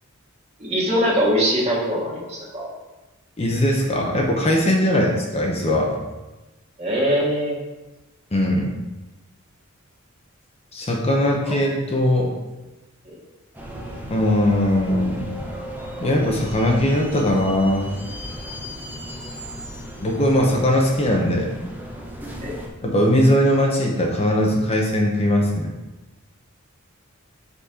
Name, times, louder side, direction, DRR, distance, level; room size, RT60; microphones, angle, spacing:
voice 1, 0.6-2.7 6.8-7.6 13.0-13.2 22.4-22.5, equal, 30° right, -5 dB, 1.7 m, -22 dB
voice 2, 3.4-5.9 8.3-8.7 10.7-12.3 14.1-15.3 16.0-17.9 20.0-21.5 22.8-25.7, left 1 dB, 30° left, -1 dB, 0.8 m, -20 dB
sound 1, 13.5-22.7, equal, 10° right, 0.8 m, -35 dB
5.5 x 4.1 x 4.9 m, 1.1 s
head